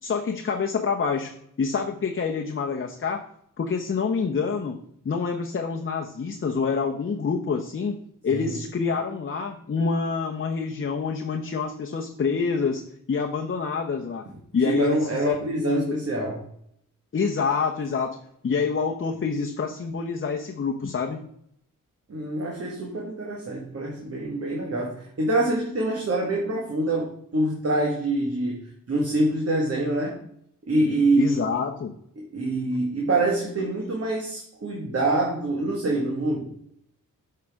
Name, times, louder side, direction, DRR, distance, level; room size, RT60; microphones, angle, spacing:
voice 1, 0.0-1.3 1.6-3.2 3.6-4.8 5.0-8.0 8.2-12.8 13.1-14.2 14.5-16.0 17.1-18.2 18.4-21.2 31.2-31.9, left 5 dB, 40° left, 2 dB, 0.8 m, -27 dB
voice 2, 14.6-16.4 22.1-28.6 28.9-30.2 30.7-31.4 32.2-36.4, right 2 dB, 45° right, -1 dB, 1.7 m, -25 dB
8.3 x 5.8 x 3.6 m, 0.68 s
cardioid pair, 85°, 33 cm